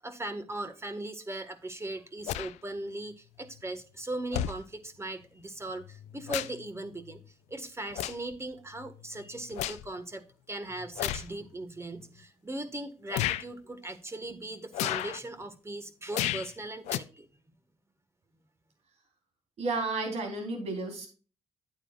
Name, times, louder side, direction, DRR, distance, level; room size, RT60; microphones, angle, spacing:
voice 1, 0.0-7.2 7.5-17.3, right 2 dB, 25° right, 8 dB, 1.6 m, -39 dB
sound 1, 2.2-2.5 3.6-3.7 4.3-4.6 5.8-6.7 7.1-7.3 7.9-8.3 8.8-9.9 11.0-11.3 12.0-12.1 13.1-13.4 14.7-15.2 16.1-16.5 16.8-17.0, left 13 dB, 90° left, 0.5 m, -33 dB
voice 2, 19.6-21.1, right 3 dB, 70° right, 2 dB, 3.8 m, -32 dB
9.7 x 8.7 x 2.5 m, 0.36 s
supercardioid pair, 60°, 11 cm